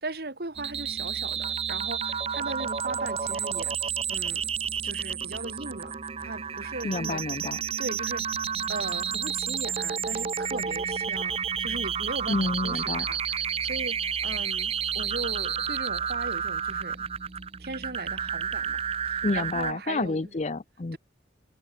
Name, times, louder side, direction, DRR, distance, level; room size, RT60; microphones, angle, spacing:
voice 1, 0.0-4.5 4.8-7.2 7.8-17.1 17.6-20.2, right 2 dB, 60° right, 1.9 m, -38 dB
sound 1, 0.6-19.7, right 7 dB, 35° right, 0.7 m, -31 dB
voice 2, 6.8-7.6 12.3-13.1 19.2-21.0, left 3 dB, 40° left, 0.6 m, -29 dB
head